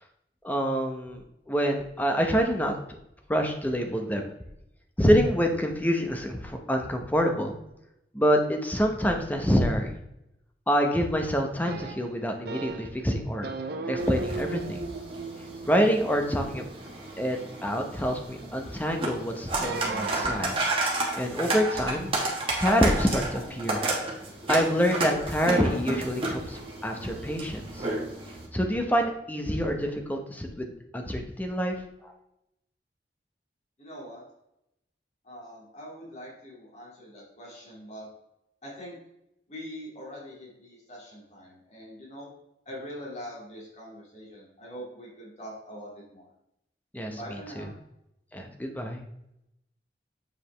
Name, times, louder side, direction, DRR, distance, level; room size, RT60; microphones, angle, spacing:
voice 1, 0.4-1.2 1.5-2.7 3.3-4.3 5.0-7.5 8.1-10.0 10.7-13.5 13.9-14.8 15.7-16.6 17.2-20.5 21.2-22.1 22.6-23.9 24.5-27.9 28.5-31.7 32.0-32.1 46.9-47.2 47.6-47.7 48.3-49.0, equal, 10° left, 3 dB, 0.8 m, -26 dB
sound 1, 11.7-13.0 13.4-17.7 19.5-20.9, right 3 dB, 60° right, 0.5 m, -37 dB
sound 2, 14.0-28.5, right 2 dB, 30° right, 1.4 m, -32 dB
voice 2, 33.8-34.2 35.2-38.1 38.6-39.0 39.5-42.3 42.7-46.3 47.1-47.7, equal, 40° left, -5 dB, 2.5 m, -43 dB
7.3 x 4.9 x 3.3 m, 0.83 s
head